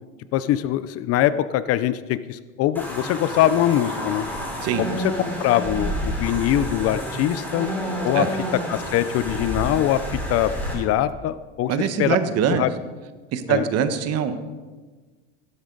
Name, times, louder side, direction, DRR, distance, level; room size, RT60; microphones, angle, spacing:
voice 1, 0.3-4.3 4.8-5.1 5.4-7.7 8.0-8.3 8.5-10.0 10.3-12.2 12.5-12.7 13.5-13.7, left 12 dB, 40° left, 14 dB, 0.5 m, -22 dB
sound 1, 2.7-10.7, equal, 5° left, 3.9 m, -29 dB
voice 2, 11.7-12.6 13.3-14.4, right 8 dB, 40° right, 10 dB, 1.2 m, -23 dB
16.0 x 12.5 x 3.9 m, 1.4 s
supercardioid pair, 130°, 37 cm